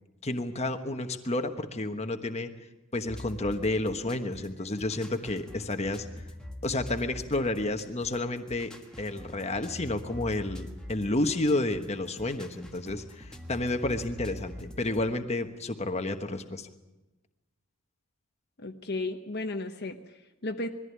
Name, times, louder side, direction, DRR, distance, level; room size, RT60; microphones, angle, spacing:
voice 1, 0.2-2.5 2.9-6.1 6.6-8.7 9.0-16.7, left 2 dB, 30° left, 7 dB, 1.2 m, -30 dB
sound 1, 3.0-15.1, left 1 dB, 5° left, 1.5 m, -45 dB
voice 2, 18.6-20.7, left 2 dB, 50° left, 5 dB, 1.0 m, -34 dB
21.5 x 15.0 x 9.6 m, 1.1 s
head